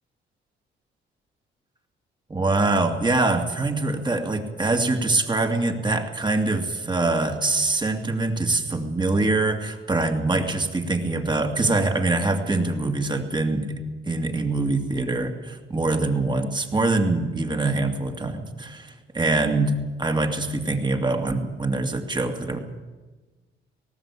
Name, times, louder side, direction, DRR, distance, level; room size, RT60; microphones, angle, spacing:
voice 1, 2.3-13.7 14.0-19.7 20.0-22.6, right 2 dB, 20° right, 4 dB, 2.6 m, -24 dB
19.0 x 16.5 x 8.6 m, 1.3 s
cardioid pair, 90°, 20 cm